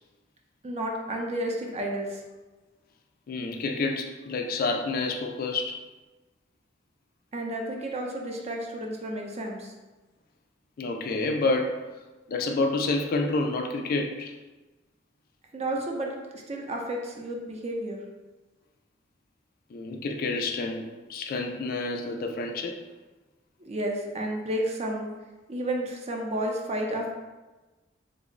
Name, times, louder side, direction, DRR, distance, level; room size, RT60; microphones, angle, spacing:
voice 1, 0.6-2.2 7.3-9.7 15.5-18.0 23.7-25.1 25.5-27.1, right 1 dB, 35° right, 0 dB, 0.4 m, -31 dB
voice 2, 3.3-5.8 10.8-11.8 12.3-14.3 19.7-22.8, left 3 dB, 50° left, 4 dB, 0.3 m, -29 dB
3.3 x 2.0 x 3.7 m, 1.2 s
head